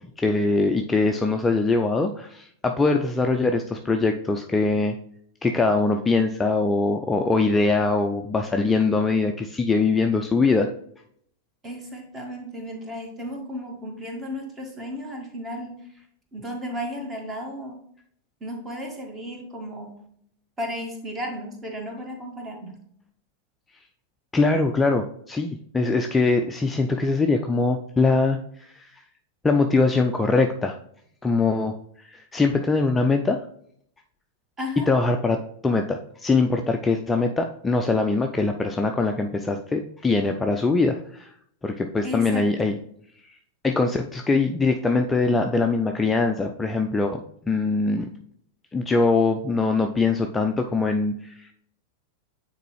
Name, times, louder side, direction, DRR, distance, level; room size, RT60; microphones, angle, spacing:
voice 1, 0.2-4.9 5.4-10.7 24.3-28.9 29.4-30.8 31.2-31.8 32.0-33.4 34.9-35.4 35.6-41.3 41.6-42.8 43.6-47.2 47.4-48.1 48.7-51.5, left 3 dB, 10° left, 4 dB, 0.4 m, -22 dB
voice 2, 11.6-15.7 16.3-17.8 18.4-20.0 20.6-22.8 34.6-34.9 42.0-42.7, equal, 20° right, 2 dB, 1.6 m, -34 dB
9.1 x 4.0 x 3.1 m, 0.67 s
figure-of-eight pair, 90°, 0 cm